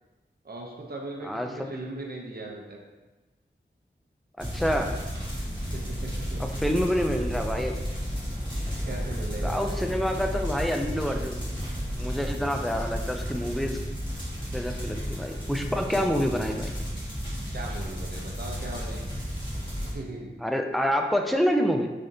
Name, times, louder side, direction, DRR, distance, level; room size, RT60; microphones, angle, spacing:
voice 1, 0.4-2.8 5.7-6.4 8.6-9.9 17.5-19.0 19.8-20.3, right 2 dB, 50° right, -1 dB, 0.7 m, -39 dB
voice 2, 1.2-1.7 4.4-4.9 6.4-7.7 9.4-11.4 12.0-13.8 14.5-16.7 20.4-21.9, equal, ahead, 4 dB, 0.3 m, -27 dB
sound 1, 4.4-19.9, equal, 20° left, 1.5 m, -32 dB
3.7 x 3.4 x 2.7 m, 1.2 s
wide cardioid pair, 55°, 20 cm